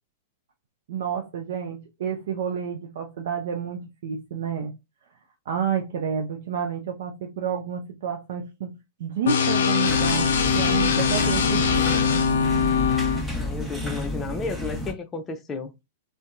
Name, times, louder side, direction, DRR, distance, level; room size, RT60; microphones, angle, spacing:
voice 1, 0.9-4.7 5.5-12.0, right 7 dB, 60° right, 0.5 m, -30 dB
sound 1, 9.3-13.2, left 6 dB, 70° left, 0.5 m, -22 dB
sound 2, 9.9-14.9, equal, 5° right, 0.8 m, -31 dB
voice 2, 13.3-15.7, left 4 dB, 20° left, 0.5 m, -32 dB
2.7 x 2.2 x 2.4 m
hypercardioid pair, 110°, 0 cm